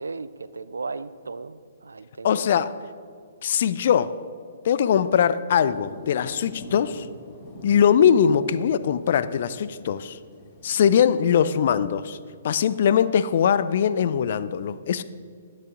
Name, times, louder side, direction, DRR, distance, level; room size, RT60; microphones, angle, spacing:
voice 1, 0.0-2.4, right 4 dB, 75° right, 15 dB, 0.4 m, -36 dB
voice 2, 2.2-2.7 3.4-4.2 4.6-7.1 7.6-10.2 10.6-12.2 12.4-15.0, left 8 dB, 55° left, 15 dB, 0.4 m, -21 dB
sound 1, 5.6-10.8, left 1 dB, 30° left, 1.8 m, -44 dB
10.0 x 8.8 x 3.7 m, 2.1 s
figure-of-eight pair, 125°, 0 cm